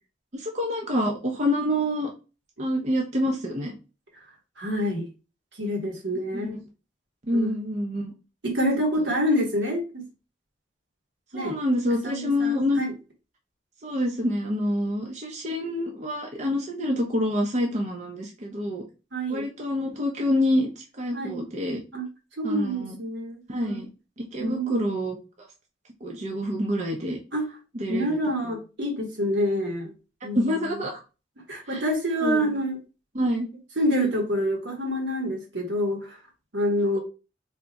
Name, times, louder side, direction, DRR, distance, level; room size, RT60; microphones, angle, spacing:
voice 1, 0.3-2.1 2.6-3.7 6.3-6.4 7.3-8.1 9.0-9.1 11.3-12.8 13.8-18.8 19.3-21.8 22.4-23.0 23.5-23.9 24.2-25.2 26.0-27.2 27.7-28.2 28.4-28.6 30.3-31.0 31.7-31.8 32.2-32.5 33.1-33.5, left 1 dB, 40° right, 0 dB, 0.7 m, -27 dB
voice 2, 4.6-5.1 5.6-6.6 7.3-7.6 8.4-10.0 11.3-11.6 12.0-12.9 19.1-19.5 21.1-21.4 21.9-22.1 22.4-23.8 24.4-24.8 27.3-27.5 27.9-29.9 30.2-30.7 31.5-32.8 33.8-36.2 36.5-37.0, equal, 75° right, 1 dB, 1.3 m, -27 dB
3.5 x 2.3 x 4.0 m, 0.30 s
head